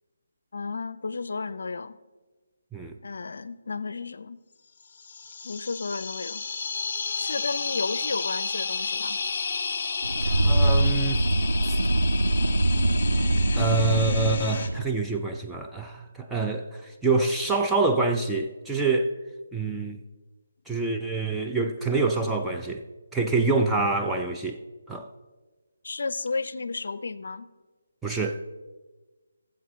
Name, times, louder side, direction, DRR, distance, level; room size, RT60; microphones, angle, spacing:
voice 1, 0.5-2.0 3.0-4.4 5.4-6.4 7.2-9.2 25.8-27.5, left 4 dB, 65° left, 0.5 m, -33 dB
sound 1, 4.9-14.7, left 5 dB, 45° left, 1.1 m, -32 dB
sound 2, 10.0-14.9, right 1 dB, 90° right, 0.6 m, -23 dB
voice 2, 10.2-11.3 11.6-11.8 13.6-19.1 19.5-20.0 20.7-22.8 23.1-24.6 24.9-25.1 28.0-28.4, right 3 dB, 5° right, 0.5 m, -26 dB
18.0 x 7.5 x 3.1 m
figure-of-eight pair, 160°, 0 cm